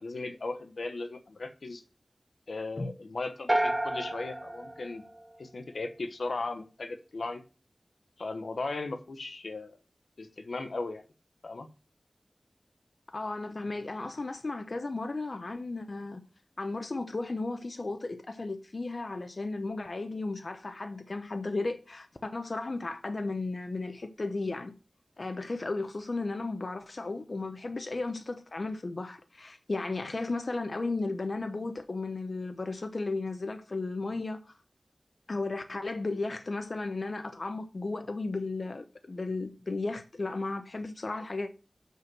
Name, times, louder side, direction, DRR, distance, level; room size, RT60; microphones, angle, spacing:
voice 1, 0.0-1.8 2.5-5.0 5.4-7.4 8.2-9.8 10.2-11.0 11.4-11.7, left 3 dB, 85° left, 0.9 m, -37 dB
sound 1, 3.5-5.7, right 1 dB, 20° right, 0.5 m, -31 dB
voice 2, 13.1-16.2 16.6-24.7 25.2-34.5 35.3-41.5, left 3 dB, 55° left, 0.7 m, -34 dB
6.1 x 5.5 x 6.2 m
wide cardioid pair, 75°, 0 cm